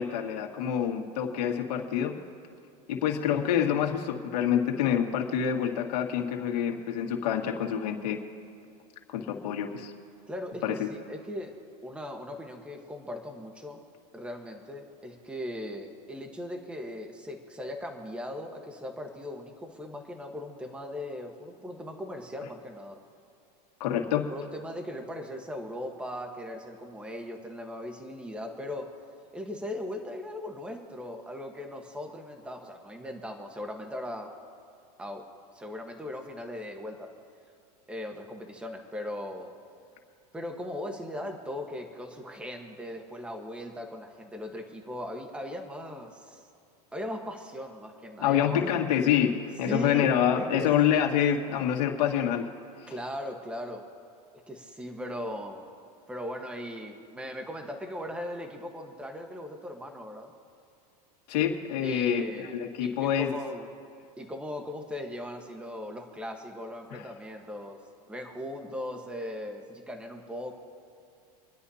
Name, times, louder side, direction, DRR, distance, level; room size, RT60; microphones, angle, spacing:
voice 1, 0.0-2.2 2.9-8.2 9.1-9.9 10.6-10.9 23.8-24.3 48.2-52.5 61.3-63.3 66.9-67.0, left 9 dB, 80° left, 2 dB, 1.9 m, -27 dB
voice 2, 10.3-11.5 11.8-13.8 14.1-23.0 24.3-28.9 29.3-34.3 35.0-35.2 35.5-37.1 37.9-39.5 40.3-46.4 46.9-48.8 49.7-50.1 50.4-50.7 52.9-53.8 54.5-55.6 56.1-60.3 61.8-62.6 62.8-63.7 64.2-67.8 68.1-70.5, left 1 dB, 5° right, 3 dB, 1.3 m, -38 dB
29.0 x 10.5 x 2.8 m, 2.5 s
supercardioid pair, 135°, 21 cm